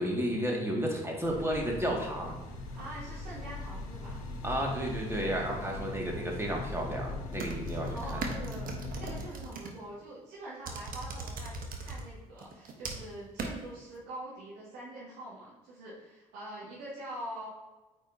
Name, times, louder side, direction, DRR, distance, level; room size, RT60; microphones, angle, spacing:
voice 1, 0.0-2.4 4.4-8.2, equal, 15° right, -1 dB, 2.1 m, -32 dB
sound 1, 1.2-9.3, left 2 dB, 90° left, 0.8 m, -40 dB
voice 2, 2.7-4.3 7.7-8.7 9.0-17.5, right 1 dB, 75° right, -9 dB, 1.8 m, -44 dB
sound 2, 7.3-9.7 10.7-12.0 12.4-13.1 13.4-13.5, right 3 dB, 55° right, 1.2 m, -39 dB
8.8 x 4.5 x 2.8 m, 1.2 s
hypercardioid pair, 55°, 18 cm